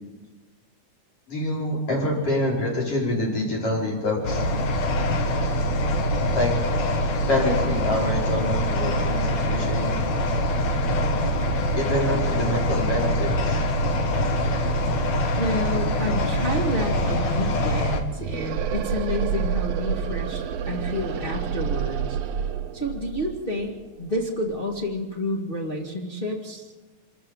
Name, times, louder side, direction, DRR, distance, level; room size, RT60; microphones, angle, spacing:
voice 1, 1.3-4.4 6.3-6.5 7.3-9.9 11.8-13.6, left 1 dB, 50° left, -2 dB, 6.0 m, -26 dB
sound 1, 4.2-18.0, equal, 70° left, 2.8 m, -24 dB
voice 2, 15.4-22.2 22.7-26.7, left 1 dB, 20° left, -2 dB, 2.0 m, -29 dB
sound 2, 16.1-24.9, right 7 dB, 70° right, 1.9 m, -30 dB
26.5 x 14.0 x 7.4 m, 1.3 s
omnidirectional pair, 3.3 m